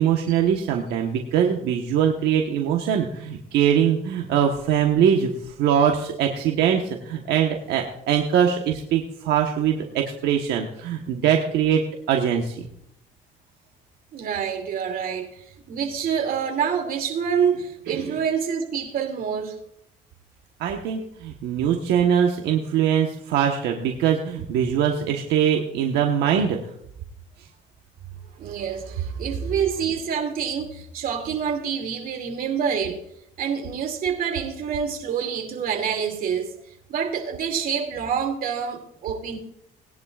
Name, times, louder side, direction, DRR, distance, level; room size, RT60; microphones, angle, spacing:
voice 1, 0.0-11.8 12.1-12.6 17.9-18.0 20.6-26.6, right 8 dB, 80° right, 2 dB, 1.2 m, -22 dB
voice 2, 14.1-19.6 28.3-33.0 33.4-36.5 36.9-39.4, right 7 dB, 60° right, 3 dB, 2.6 m, -27 dB
19.5 x 10.5 x 2.4 m, 0.73 s
cardioid pair, 110°, 17 cm